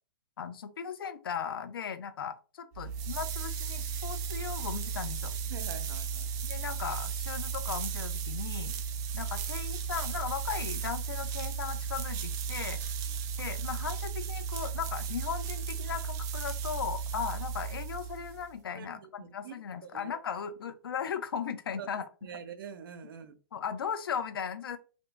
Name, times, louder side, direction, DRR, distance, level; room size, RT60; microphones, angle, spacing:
voice 1, 0.4-5.3 6.4-8.8 9.1-12.8 13.4-22.0 23.5-24.8, left 7 dB, 75° left, 11 dB, 0.6 m, -37 dB
sound 1, 2.7-18.5, right 6 dB, 30° right, 0.4 m, -35 dB
voice 2, 5.5-6.3 18.7-20.1 21.8-21.9 22.2-23.4, right 7 dB, 70° right, 9 dB, 0.6 m, -45 dB
2.6 x 2.6 x 3.3 m, 0.35 s
hypercardioid pair, 130°, 12 cm